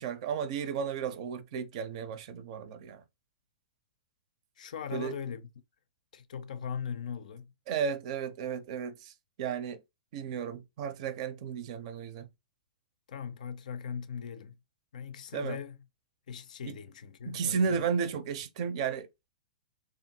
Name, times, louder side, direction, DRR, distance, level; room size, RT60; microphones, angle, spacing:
voice 1, 0.0-3.0 4.9-5.2 7.7-9.1 9.4-9.8 10.1-12.3 15.3-15.6 16.7-16.8 17.3-19.3, right 6 dB, 50° right, 0.5 m, -33 dB
voice 2, 4.6-5.5 6.1-7.5 13.1-14.6 14.9-15.8 16.3-17.8, left 7 dB, 70° left, 0.4 m, -39 dB
2.5 x 2.4 x 2.7 m
hypercardioid pair, 120°, 4 cm